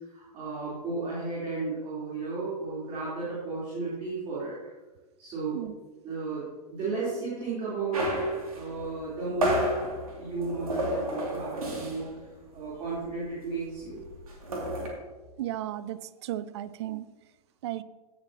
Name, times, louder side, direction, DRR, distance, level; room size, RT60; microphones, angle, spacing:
voice 1, 0.1-4.5 5.2-5.6 6.0-9.7 10.2-12.2 12.5-14.0, right 3 dB, 30° right, -8 dB, 3.7 m, -33 dB
sound 1, 7.9-12.2 12.5-12.7 13.0-14.9, equal, 60° right, 2.6 m, -32 dB
voice 2, 15.4-17.1 17.6-17.8, right 13 dB, 45° right, 17 dB, 0.5 m, -34 dB
16.0 x 7.1 x 2.9 m, 1.2 s
figure-of-eight pair, 100°, 20 cm